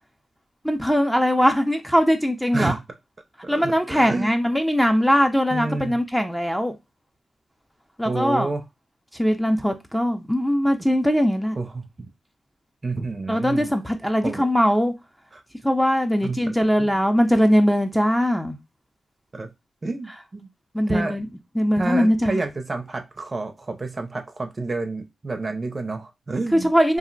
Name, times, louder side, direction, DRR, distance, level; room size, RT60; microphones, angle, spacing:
voice 1, 0.6-2.7 3.5-6.7 8.0-8.5 9.1-11.6 13.3-14.9 15.6-18.6 20.7-21.3 21.5-22.4 26.5-27.0, equal, 5° left, 0.6 m, -21 dB
voice 2, 3.4-4.4 5.5-6.0 8.0-8.6 11.6-12.1 12.8-13.7 14.2-14.4 15.3-15.4 16.2-16.9 19.3-19.5 19.8-20.5 20.9-21.2 21.8-26.7, right 3 dB, 40° right, 0.6 m, -29 dB
2.5 x 2.0 x 3.8 m
cardioid pair, 50°, 0 cm